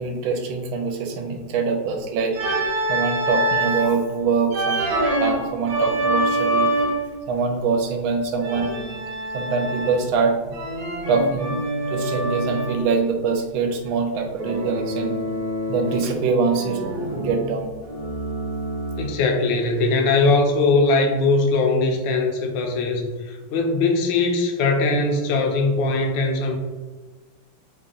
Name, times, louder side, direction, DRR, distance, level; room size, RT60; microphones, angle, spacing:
voice 1, 0.0-2.4 2.9-4.8 5.2-6.7 7.3-8.8 9.3-10.6 11.1-11.6 11.9-15.2 15.7-17.7, right 4 dB, 80° right, 3 dB, 1.4 m, -24 dB
Organ, 2.3-4.0 4.5-7.2 8.4-10.2 10.5-12.8 14.4-16.2 16.5-19.2, right 1 dB, 65° right, 1.1 m, -25 dB
voice 2, 19.0-26.6, left 3 dB, 75° left, 3 dB, 1.1 m, -20 dB
3.4 x 2.3 x 3.8 m, 1.3 s
omnidirectional pair, 2.3 m